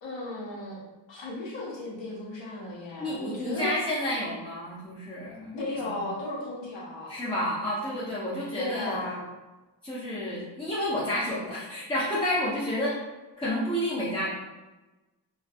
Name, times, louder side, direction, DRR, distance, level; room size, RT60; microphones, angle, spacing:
voice 1, 0.0-0.8 1.1-3.8 5.5-7.2 8.5-9.3, left 2 dB, 80° left, -4 dB, 0.8 m, -35 dB
voice 2, 3.0-6.0 7.1-9.0 9.8-13.0 13.4-14.3, left 1 dB, 15° left, -10 dB, 0.4 m, -30 dB
2.4 x 2.3 x 2.5 m, 1.1 s
wide cardioid pair, 165°, 44 cm